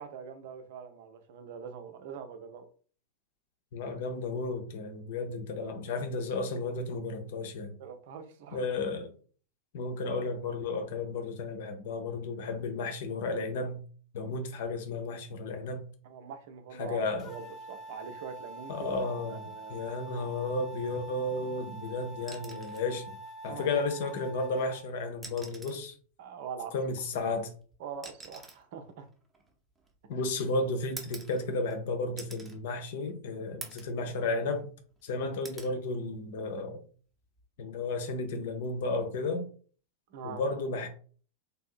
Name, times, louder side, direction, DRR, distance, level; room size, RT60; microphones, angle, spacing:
voice 1, 0.0-2.7 7.8-8.7 16.0-19.9 23.5-23.8 26.2-26.7 27.8-29.1 30.2-30.3 35.3-35.4 40.1-40.4, right 7 dB, 50° right, 0.5 m, -43 dB
voice 2, 3.7-7.7 8.5-9.1 9.7-13.8 14.1-15.8 16.8-17.3 18.7-19.4 19.7-23.1 23.4-25.9 26.7-27.5 30.1-34.7 35.0-36.8 37.6-39.5 40.2-40.9, left 3 dB, 55° left, 0.6 m, -33 dB
sound 1, 17.2-24.8, right 1 dB, 30° left, 0.9 m, -45 dB
sound 2, 22.2-22.9 24.3-24.5 25.1-25.9 27.1-30.1 31.0-31.8 32.2-32.6 33.0-33.1 33.6-34.0 34.4-35.0 35.4-35.8 37.2-37.5, right 3 dB, 10° right, 0.8 m, -47 dB
3.3 x 2.6 x 2.4 m
figure-of-eight pair, 90°, 0 cm